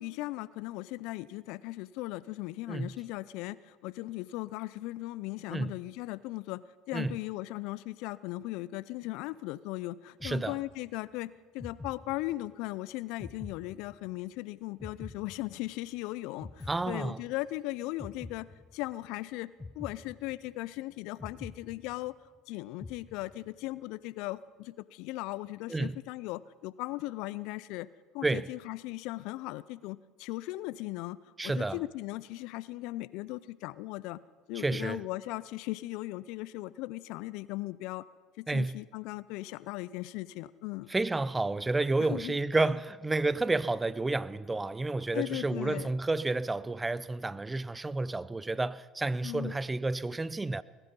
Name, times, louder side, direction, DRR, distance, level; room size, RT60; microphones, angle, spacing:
voice 1, 0.0-22.1 22.5-27.9 28.1-31.2 31.4-34.2 34.5-38.0 38.4-40.9 42.0-42.4 42.6-42.7 45.1-45.9 49.2-49.5, left 18 dB, 70° left, 0.4 m, -38 dB
sound 1, 10.2-11.1 11.6-12.7 13.2-14.4 14.8-16.0 16.4-17.6 18.0-19.1 19.6-20.8 21.2-22.4 22.8-23.7, left 3 dB, 20° left, 0.8 m, -47 dB
voice 2, 10.2-10.6 16.7-17.2 25.7-26.0 28.2-28.5 31.4-31.8 34.5-35.0 38.5-38.8 40.9-50.6, right 2 dB, 15° right, 0.5 m, -30 dB
20.0 x 12.0 x 5.3 m
hypercardioid pair, 70°, 0 cm